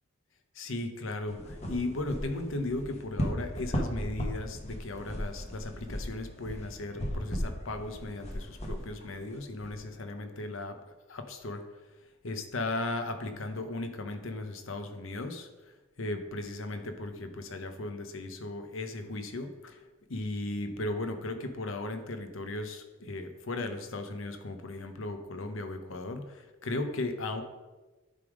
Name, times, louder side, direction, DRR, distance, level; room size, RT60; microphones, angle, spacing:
voice 1, 0.5-10.8 11.1-11.6 12.2-15.5 16.0-19.8 20.1-27.4, left 2 dB, 70° left, 7 dB, 0.8 m, -36 dB
sound 1, 1.3-9.8, equal, 30° left, 1.1 m, -36 dB
10.5 x 3.6 x 4.9 m, 1.2 s
head